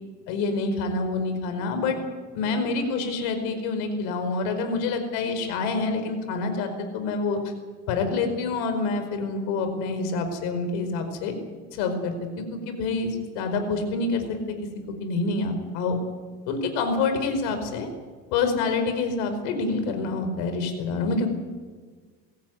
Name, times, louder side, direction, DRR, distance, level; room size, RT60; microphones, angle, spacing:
voice 1, 0.3-2.0 2.3-7.4 7.9-11.3 11.7-14.4 15.0-16.0 16.5-17.9 18.3-21.3, left 3 dB, 80° left, 7 dB, 4.9 m, -27 dB
22.0 x 16.0 x 9.6 m, 1.5 s
cardioid pair, 135°, 31 cm